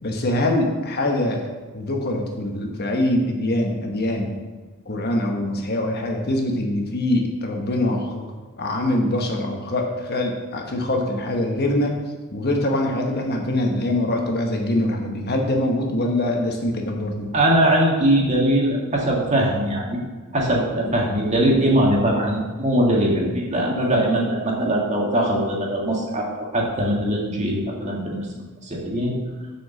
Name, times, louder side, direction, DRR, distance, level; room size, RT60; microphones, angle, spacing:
voice 1, 0.0-1.5 1.7-4.3 4.9-8.3 8.6-11.9 12.3-17.3 20.9-21.0, left 1 dB, 45° left, 1 dB, 1.2 m, -23 dB
voice 2, 17.3-20.0 20.3-29.2, right 1 dB, 30° right, -2 dB, 1.7 m, -21 dB
7.1 x 4.9 x 7.0 m, 1.3 s
head